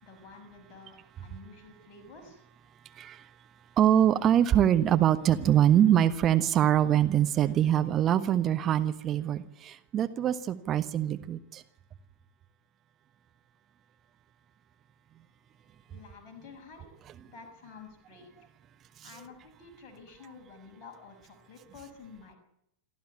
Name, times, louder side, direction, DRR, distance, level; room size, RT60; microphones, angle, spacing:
voice 1, 0.0-2.4 15.9-16.9 17.3-18.5 19.0-22.4, left 4 dB, 35° left, 3 dB, 6.3 m, -50 dB
voice 2, 2.9-3.2 3.8-11.6, right 10 dB, 30° right, 9 dB, 1.2 m, -24 dB
27.0 x 13.0 x 9.9 m, 0.79 s
figure-of-eight pair, 90°, 0 cm